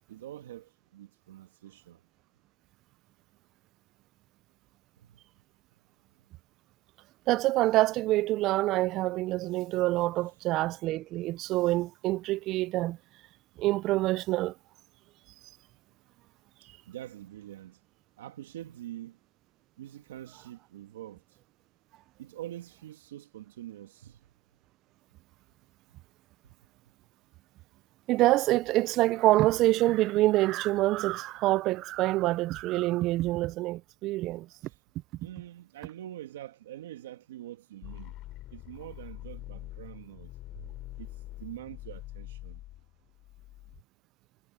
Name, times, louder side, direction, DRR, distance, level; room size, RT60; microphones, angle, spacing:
voice 1, 0.1-2.1 5.0-5.2 16.6-17.8 18.2-19.2 19.8-21.4 22.2-24.3 34.6-34.8 35.2-38.2 38.5-42.6, right 13 dB, 85° right, 2.3 m, -45 dB
voice 2, 7.3-13.0 13.6-14.5 28.1-34.5, right 17 dB, 50° right, 0.5 m, -26 dB
sound 1, 37.8-43.8, left 16 dB, 50° left, 4.6 m, -44 dB
hypercardioid pair, 110°, 0 cm